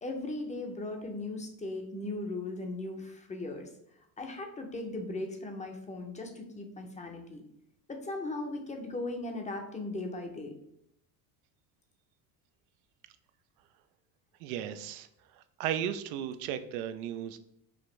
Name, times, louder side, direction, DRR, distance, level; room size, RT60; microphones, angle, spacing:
voice 1, 0.0-3.7 4.2-7.4 7.9-10.5, left 2 dB, 15° left, 4 dB, 0.6 m, -38 dB
voice 2, 14.4-15.1 15.3-17.4, right 10 dB, 85° right, 10 dB, 0.5 m, -35 dB
5.0 x 2.5 x 3.1 m, 0.75 s
supercardioid pair, 115°, 42 cm